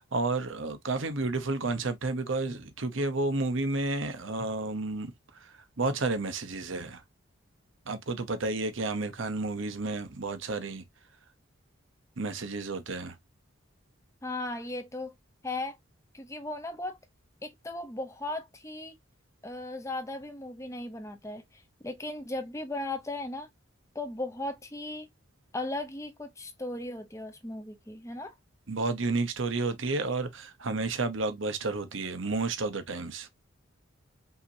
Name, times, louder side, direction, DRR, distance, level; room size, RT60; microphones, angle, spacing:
voice 1, 0.0-7.0 7.9-10.8 12.2-13.2 28.7-33.3, right 3 dB, 70° right, 0.9 m, -31 dB
voice 2, 14.2-15.1 15.4-15.8 16.1-17.0 17.4-18.9 19.4-23.5 23.9-25.1 25.5-28.3, left 2 dB, 15° left, 0.8 m, -37 dB
5.6 x 2.9 x 2.7 m
head